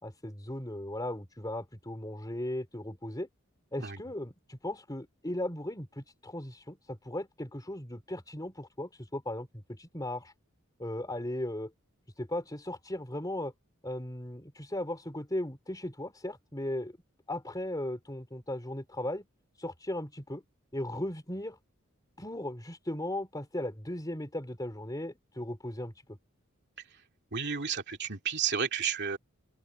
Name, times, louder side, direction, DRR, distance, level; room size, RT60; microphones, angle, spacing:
voice 1, 0.0-3.3 3.7-10.3 10.8-11.7 12.2-13.5 13.8-17.0 17.3-19.3 19.6-20.4 20.7-21.6 22.2-26.2, left 1 dB, 20° left, 4.0 m, -37 dB
voice 2, 27.3-29.2, right 7 dB, 55° right, 2.8 m, -32 dB
open air
head